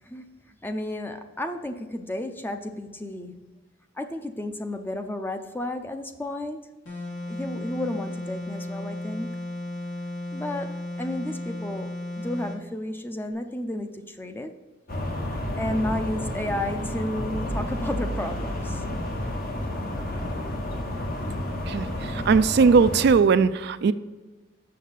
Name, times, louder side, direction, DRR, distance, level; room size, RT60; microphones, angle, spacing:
voice 1, 0.6-3.5 4.0-6.7 7.3-9.3 10.3-14.6 15.5-18.8, left 1 dB, 10° left, 7 dB, 0.5 m, -32 dB
sound 1, 6.8-12.6, left 1 dB, 75° left, 2.4 m, -34 dB
sound 2, 14.9-23.1, left 1 dB, 50° left, 1.1 m, -31 dB
voice 2, 22.1-23.9, right 5 dB, 60° right, 12 dB, 0.3 m, -19 dB
6.7 x 6.3 x 5.4 m, 1.2 s
head